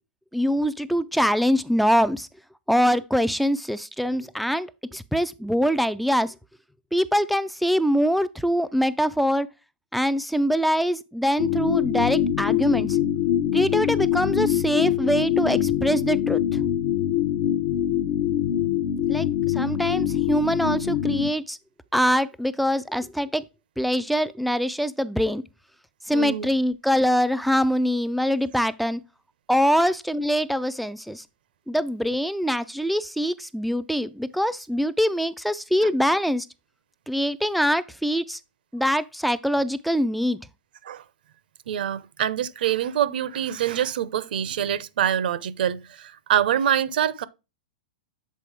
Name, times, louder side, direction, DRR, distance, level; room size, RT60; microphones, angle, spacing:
voice 1, 0.3-2.3 2.7-6.4 6.9-9.5 9.9-13.0 13.5-16.6 19.1-21.6 21.9-23.4 23.8-25.4 26.0-29.0 29.5-31.2 31.7-36.5 37.1-38.4 38.7-40.5, equal, ahead, 0.3 m, -23 dB
sound 1, 11.4-21.3, left 11 dB, 50° left, 0.7 m, -24 dB
voice 2, 26.1-26.5 40.8-41.0 41.7-47.2, right 10 dB, 70° right, 0.7 m, -25 dB
7.5 x 4.2 x 3.3 m
hypercardioid pair, 135°, 5 cm